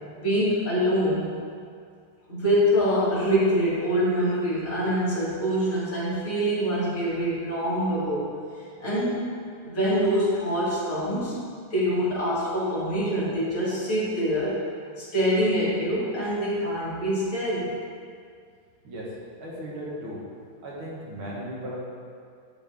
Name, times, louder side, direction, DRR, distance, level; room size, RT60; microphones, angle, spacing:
voice 1, 0.2-1.3 2.3-8.3 8.8-9.3 9.6-11.4 11.7-14.6 15.0-17.7, equal, 40° left, -9 dB, 2.5 m, -25 dB
voice 2, 19.4-20.2 20.6-21.7, equal, 70° right, -5 dB, 2.3 m, -36 dB
12.0 x 4.2 x 3.5 m, 2.2 s
omnidirectional pair, 2.4 m